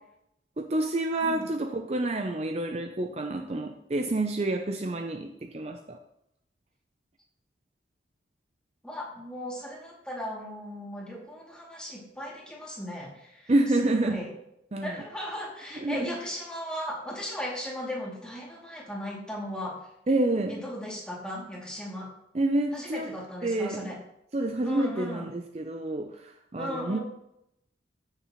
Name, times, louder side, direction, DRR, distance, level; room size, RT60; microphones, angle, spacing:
voice 1, 0.6-6.0 13.5-14.2 14.7-14.9 15.7-16.1 20.1-20.6 22.3-23.1 23.4-23.9 24.3-27.0, right 2 dB, 35° right, 5 dB, 0.5 m, -28 dB
voice 2, 8.8-14.3 14.8-19.9 20.5-22.1 22.7-24.0 24.6-25.3 26.6-27.0, equal, 5° left, -4 dB, 2.5 m, -37 dB
15.0 x 6.7 x 3.0 m, 0.80 s
head